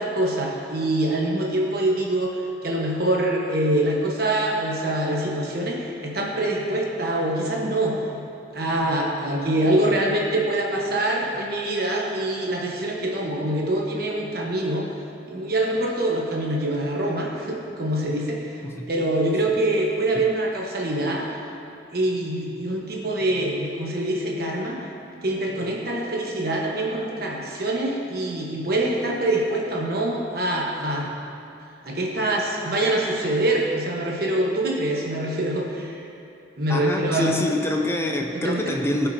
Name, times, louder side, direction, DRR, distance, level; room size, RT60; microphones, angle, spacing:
voice 1, 0.0-8.2 8.5-14.9 15.2-18.4 18.9-21.3 21.9-24.8 25.2-31.1 31.8-36.0 36.6-37.4 38.3-38.7, right 1 dB, 50° right, -2 dB, 1.2 m, -24 dB
voice 2, 36.7-39.1, left 1 dB, 15° left, 2 dB, 0.5 m, -25 dB
15.0 x 5.7 x 2.8 m, 2.6 s
head